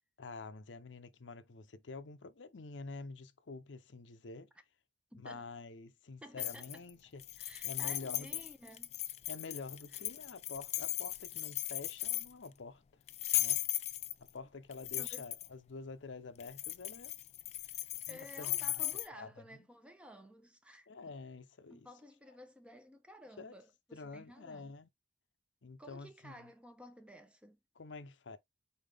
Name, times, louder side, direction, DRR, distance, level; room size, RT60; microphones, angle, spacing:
voice 1, 0.2-4.5 5.1-7.2 7.6-8.4 9.3-12.8 13.4-13.6 14.3-17.2 18.1-18.8 19.2-19.3 20.9-21.9 23.4-23.5 23.9-24.9 25.6-26.5 27.8-28.4, left 3 dB, 85° left, 0.6 m, -48 dB
voice 2, 5.1-5.5 6.2-6.8 7.4-9.0 9.9-10.0 15.0-15.3 18.1-21.1 21.7-24.7 25.8-27.6, equal, 5° right, 0.7 m, -54 dB
sound 1, 6.4-6.9 7.2-12.5 13.1-14.3 14.7-15.5 16.4-19.1, left 15 dB, 35° left, 0.3 m, -37 dB
4.3 x 3.7 x 3.4 m
head